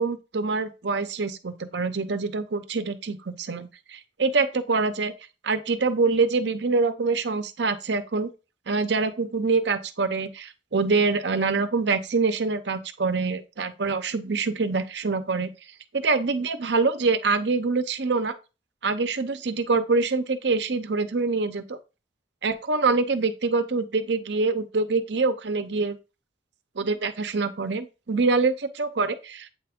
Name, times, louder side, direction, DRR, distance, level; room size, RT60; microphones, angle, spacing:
voice 1, 0.0-5.1 5.4-8.3 8.7-15.5 15.9-18.3 18.8-21.8 22.4-26.0 26.8-29.5, right 4 dB, 70° right, 0.7 m, -25 dB
8.4 x 3.4 x 3.6 m
head